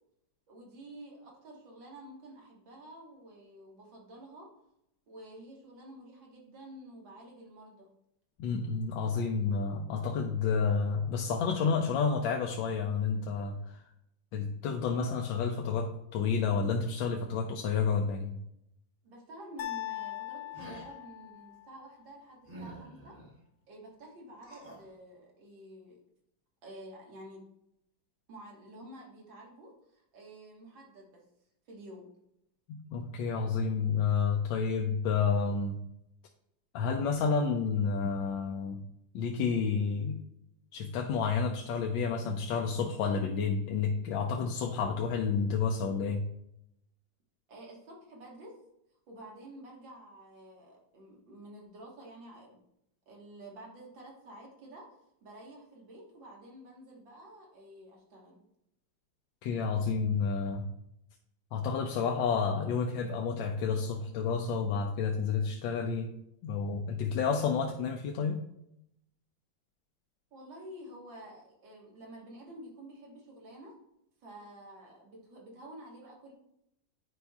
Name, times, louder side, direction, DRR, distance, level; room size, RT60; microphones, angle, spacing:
voice 1, 0.5-4.5 5.1-7.9 19.0-23.2 23.7-26.0 26.6-27.4 28.3-31.2 31.7-32.1 47.5-48.6 49.1-52.6 53.1-54.9 55.2-58.4 70.3-73.8 74.2-76.3, right 1 dB, 80° right, -2 dB, 2.2 m, -50 dB
voice 2, 8.4-13.9 14.3-18.3 32.7-35.8 36.7-38.8 39.1-40.2 40.7-46.2 59.4-60.6 61.5-66.1 66.4-68.4, left 5 dB, 85° left, 2 dB, 1.3 m, -30 dB
sound 1, 19.6-21.7, left 14 dB, 70° left, 1.4 m, -40 dB
sound 2, 20.5-20.9 22.4-23.3 24.4-24.9, right 2 dB, 30° right, 1.2 m, -47 dB
9.7 x 5.0 x 2.3 m, 0.79 s
omnidirectional pair, 2.0 m